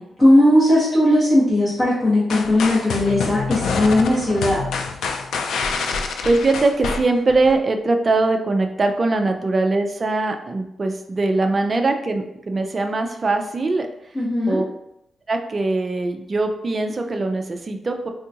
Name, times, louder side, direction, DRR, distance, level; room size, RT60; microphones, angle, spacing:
voice 1, 0.0-4.6 14.1-14.6, left 1 dB, 30° left, -10 dB, 1.2 m, -17 dB
sound 1, 2.3-7.6, left 4 dB, 90° left, 0.3 m, -26 dB
voice 2, 6.2-13.9 14.5-14.6 15.3-18.1, right 2 dB, 30° right, 4 dB, 0.3 m, -21 dB
3.7 x 2.3 x 2.7 m, 0.83 s
cardioid pair, 120°, 0 cm